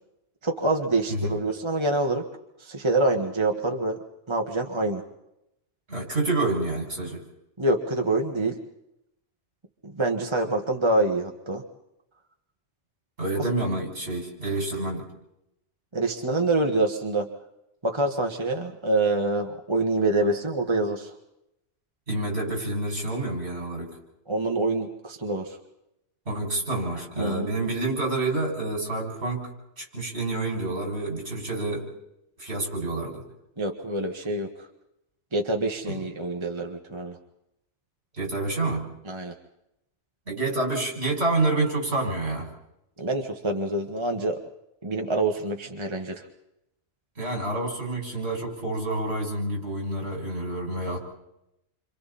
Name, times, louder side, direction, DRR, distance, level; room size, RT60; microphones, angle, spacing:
voice 1, 0.4-2.2 2.6-4.0 4.3-5.0 7.6-8.6 9.8-11.6 13.4-13.5 15.9-17.3 17.8-21.1 24.3-25.6 27.2-27.5 33.6-34.7 35.3-37.2 39.0-39.3 43.0-44.4 44.8-46.2, right 2 dB, 25° right, 3 dB, 1.6 m, -26 dB
voice 2, 5.9-7.2 13.2-15.1 22.1-24.0 26.3-29.5 29.8-31.9 32.4-33.2 35.9-36.0 38.1-38.8 40.3-42.5 47.2-51.0, right 2 dB, 60° right, -1 dB, 7.0 m, -28 dB
29.0 x 27.0 x 4.3 m, 0.85 s
omnidirectional pair, 1.2 m